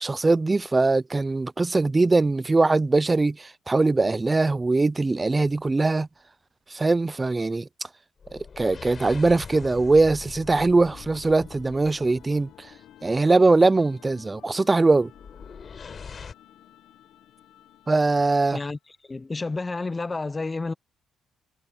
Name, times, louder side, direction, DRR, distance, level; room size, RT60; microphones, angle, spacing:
voice 1, 0.0-6.1 6.7-7.7 8.3-12.5 13.0-15.1 17.9-18.6, right 3 dB, 20° right, 0.4 m, -21 dB
sound 1, 5.5-5.7 8.2-12.7 15.1-16.3, left 5 dB, 45° left, 5.5 m, -42 dB
sound 2, 10.6-18.8, left 11 dB, 80° left, 1.1 m, -52 dB
voice 2, 19.1-20.7, left 3 dB, 25° left, 0.7 m, -30 dB
cardioid pair, 90°, 0 cm